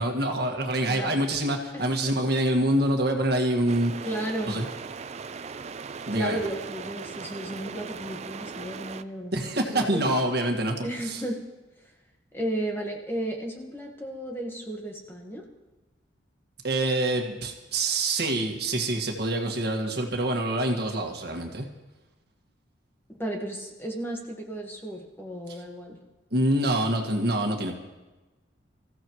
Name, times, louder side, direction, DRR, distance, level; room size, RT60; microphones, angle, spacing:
voice 1, 0.0-3.9 4.5-4.7 6.0-6.4 9.3-11.2 16.6-21.7 25.5-25.6 26.3-27.7, right 1 dB, 55° right, 3 dB, 1.8 m, -26 dB
voice 2, 0.9-1.2 1.7-1.9 4.0-4.6 6.1-10.2 10.8-11.4 12.3-15.4 23.2-26.0, right 1 dB, 10° left, 1 dB, 1.4 m, -34 dB
sound 1, 3.7-9.0, right 5 dB, 35° right, 0.4 m, -39 dB
24.5 x 15.0 x 3.1 m, 1.1 s
head